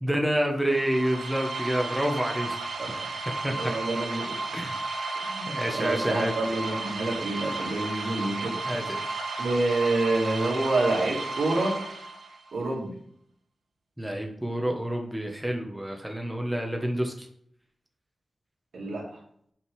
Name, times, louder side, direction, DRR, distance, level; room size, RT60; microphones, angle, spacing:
voice 1, 0.0-2.8 3.3-3.7 4.5-4.8 5.5-6.3 8.7-9.1 14.0-17.3, equal, 5° right, 2 dB, 1.0 m, -28 dB
sound 1, 0.6-12.5, right 3 dB, 70° right, 1.3 m, -33 dB
voice 2, 3.5-4.4 5.1-8.5 9.4-11.8 12.5-12.9 18.7-19.1, right 2 dB, 90° right, -2 dB, 2.3 m, -28 dB
5.9 x 5.2 x 4.7 m, 0.66 s
wide cardioid pair, 135°, 0 cm